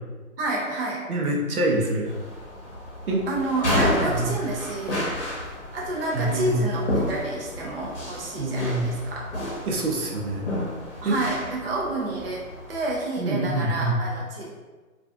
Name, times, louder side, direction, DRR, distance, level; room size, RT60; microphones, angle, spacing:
voice 1, 0.4-1.0 3.3-5.1 5.7-9.3 11.0-14.5, right 2 dB, 45° right, -3 dB, 0.4 m, -29 dB
voice 2, 1.1-2.1 3.1-3.2 4.1-4.3 6.1-6.6 8.4-8.9 9.7-10.5 11.0-11.2 13.2-13.9, right 2 dB, 85° right, -1 dB, 0.7 m, -25 dB
sound 1, 2.0-12.9, left 1 dB, 55° left, 0.7 m, -31 dB
2.4 x 2.3 x 2.3 m, 1.3 s
figure-of-eight pair, 150°, 42 cm